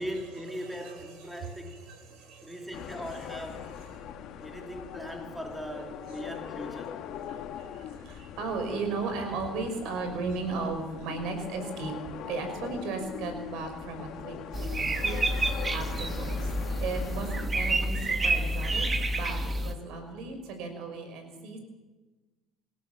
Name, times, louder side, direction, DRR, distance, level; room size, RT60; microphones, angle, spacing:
voice 1, 0.0-1.8 2.4-3.7 4.4-6.9, equal, 5° right, 2 dB, 3.1 m, -39 dB
voice 2, 0.6-3.0 3.6-4.6 7.3-11.9 12.3-15.2 15.7-16.5 16.8-18.9 19.1-21.6, right 4 dB, 70° right, 6 dB, 5.7 m, -36 dB
sound 1, 2.7-17.5, left 9 dB, 60° left, 1.9 m, -41 dB
sound 2, 14.5-19.7, right 2 dB, 20° right, 1.8 m, -29 dB
27.0 x 16.0 x 7.3 m, 1.3 s
cardioid pair, 120°, 0 cm